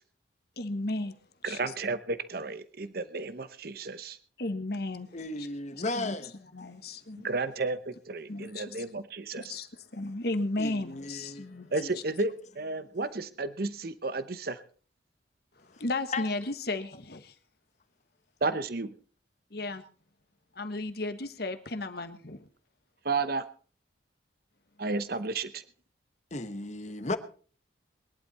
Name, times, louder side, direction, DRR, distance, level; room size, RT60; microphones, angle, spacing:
voice 1, 0.6-1.2 1.4-1.7 4.4-5.1 5.7-6.1 6.5-7.3 8.3-8.8 9.3-11.7 15.6-17.3 19.5-19.8 20.5-22.5, left 2 dB, 55° left, 1.4 m, -34 dB
voice 2, 1.4-4.2 7.2-9.5 11.7-14.6 18.4-18.9 23.0-23.5 24.8-25.6, right 3 dB, 50° right, 0.8 m, -32 dB
voice 3, 5.1-6.3 10.6-11.9 16.1-16.2 26.3-27.2, left 2 dB, 40° left, 1.1 m, -35 dB
21.5 x 11.5 x 4.2 m
head